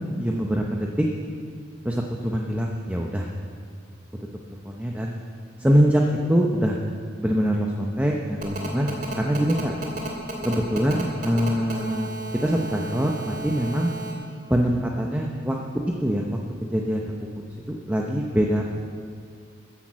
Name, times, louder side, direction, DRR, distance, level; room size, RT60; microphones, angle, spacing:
voice 1, 0.2-1.1 1.8-3.3 4.6-5.1 5.6-6.0 6.3-6.8 7.2-9.7 10.4-12.1 12.4-13.9 14.5-15.6 16.0-17.1 17.5-18.6, equal, 10° right, 0 dB, 0.8 m, -24 dB
Telephone, 8.4-14.1, right 3 dB, 50° right, 2.9 m, -33 dB
14.5 x 10.5 x 7.4 m, 2.2 s
head